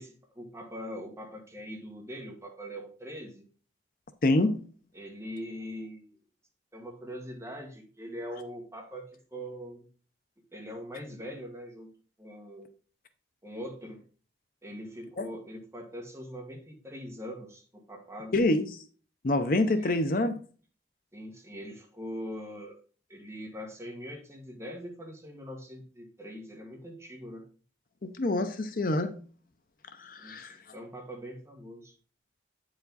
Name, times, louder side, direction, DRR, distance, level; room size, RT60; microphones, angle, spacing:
voice 1, 0.0-3.5 4.9-6.1 6.7-9.9 10.5-11.9 12.2-12.7 13.4-14.0 14.6-18.3 19.8-19.9 21.1-22.8 23.1-27.4 30.2-31.9, equal, 15° right, 1.5 m, -42 dB
voice 2, 4.2-4.6 15.2-15.3 18.3-18.7 19.2-20.4 28.2-29.1 30.0-30.6, left 2 dB, 50° left, 0.6 m, -26 dB
8.8 x 4.8 x 4.0 m
head